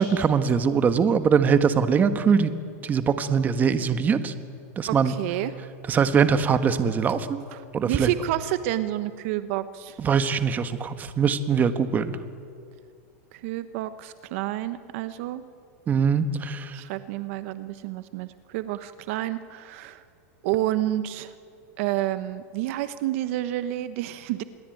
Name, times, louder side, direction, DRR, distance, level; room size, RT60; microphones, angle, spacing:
voice 1, 0.0-2.6 2.8-4.3 4.8-5.1 5.9-7.4 7.7-8.1 10.0-12.1 15.9-16.7, right 6 dB, 20° right, 10 dB, 1.4 m, -22 dB
voice 2, 4.9-5.6 7.5-10.0 13.3-15.4 16.7-20.0 20.4-21.3 21.8-24.4, right 14 dB, 55° right, 12 dB, 1.1 m, -29 dB
27.5 x 22.0 x 9.2 m, 2.3 s
supercardioid pair, 145°, 8 cm